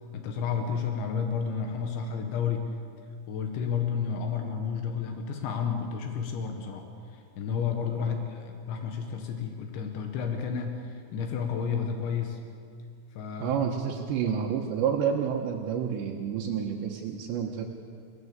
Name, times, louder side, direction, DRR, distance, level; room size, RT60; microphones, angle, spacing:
voice 1, 0.1-2.7 3.3-6.9 7.1-12.4 13.1-13.6 14.2-14.4, left 6 dB, 85° left, 4 dB, 4.0 m, -31 dB
voice 2, 13.4-17.6, right 8 dB, 75° right, 0 dB, 3.5 m, -29 dB
29.5 x 17.5 x 8.2 m, 2.3 s
omnidirectional pair, 5.1 m